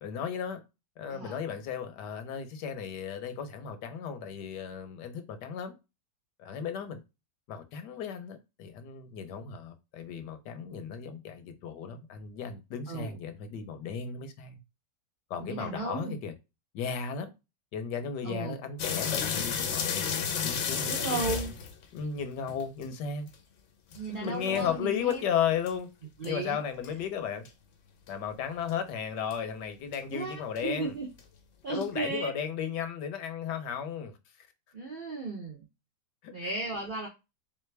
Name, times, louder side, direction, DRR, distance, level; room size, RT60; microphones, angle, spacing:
voice 1, 0.0-0.6 1.0-5.7 6.4-7.0 7.5-14.6 15.3-16.3 16.7-17.3 17.7-21.4 21.9-23.3 24.1-25.9 26.2-27.4 28.1-30.9 31.7-34.5 36.2-36.3, left 7 dB, 80° left, 1.3 m, -35 dB
voice 2, 1.1-1.4 12.9-13.2 15.4-16.2 18.2-18.6 20.9-21.5 23.9-25.2 26.2-26.6 30.1-31.1 31.6-32.3 34.7-35.7 36.3-37.1, right 3 dB, 55° right, 0.5 m, -35 dB
sound 1, 18.8-22.9 23.3-23.4 23.9-25.1 25.7-25.8 26.2-26.3 26.8-26.9 27.5-27.6 28.1-28.2 28.7-28.8 29.3-29.4 29.9-30.0 30.6-30.7 31.2-31.3 31.8-31.9, left 7 dB, 60° left, 0.8 m, -32 dB
3.6 x 3.3 x 3.3 m
omnidirectional pair, 1.8 m